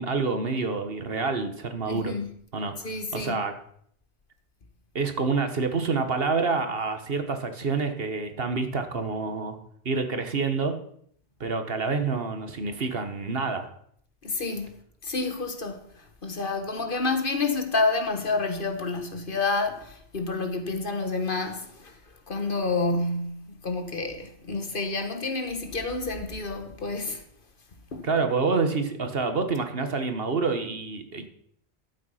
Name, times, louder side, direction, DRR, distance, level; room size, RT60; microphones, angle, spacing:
voice 1, 0.0-2.1 2.5-2.7 3.1-3.5 4.9-9.6 9.8-10.7 11.4-13.7 28.0-31.3, right 4 dB, 60° right, 1.5 m, -27 dB
voice 2, 1.9-2.3 2.8-3.4 14.2-22.0 22.3-27.2 27.9-28.1, left 3 dB, 50° left, 1.5 m, -29 dB
12.5 x 7.8 x 5.7 m
omnidirectional pair, 1.1 m